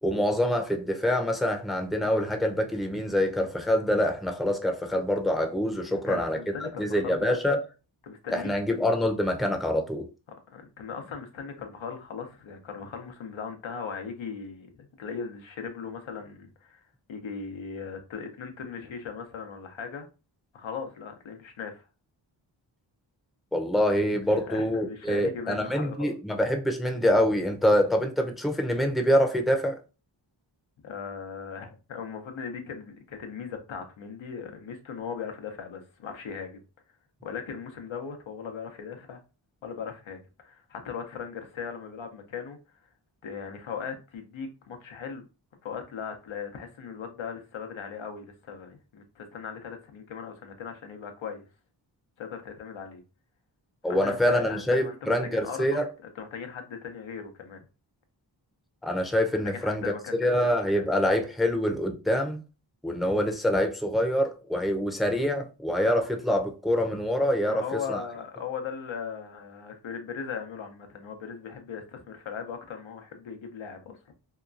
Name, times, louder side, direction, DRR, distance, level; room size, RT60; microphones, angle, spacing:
voice 1, 0.0-7.6 8.3-10.1 23.5-29.8 53.8-55.9 58.8-59.8 60.2-62.4 62.8-68.0, equal, ahead, 0.5 m, -25 dB
voice 2, 5.9-7.4 8.0-8.5 10.5-16.8 17.1-20.1 20.5-21.8 24.3-26.1 30.8-36.6 37.2-39.2 39.6-42.6 43.2-45.2 45.6-51.5 52.2-53.0 53.9-55.8 56.2-57.7 59.5-60.9 67.5-74.0, left 6 dB, 80° left, 0.7 m, -38 dB
2.8 x 2.2 x 2.5 m
cardioid pair, 45°, 46 cm